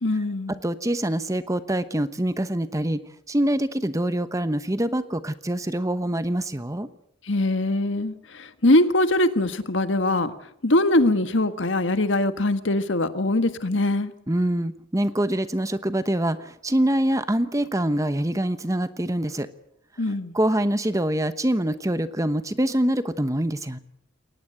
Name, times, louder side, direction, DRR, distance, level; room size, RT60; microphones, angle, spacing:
voice 1, 0.0-0.6 7.3-10.3 10.6-14.1 20.0-20.3, left 1 dB, 70° left, 10 dB, 1.6 m, -22 dB
voice 2, 0.6-3.0 3.3-6.9 14.3-19.5 20.3-23.8, right 1 dB, 15° right, 12 dB, 1.0 m, -25 dB
22.5 x 19.0 x 8.1 m, 0.72 s
head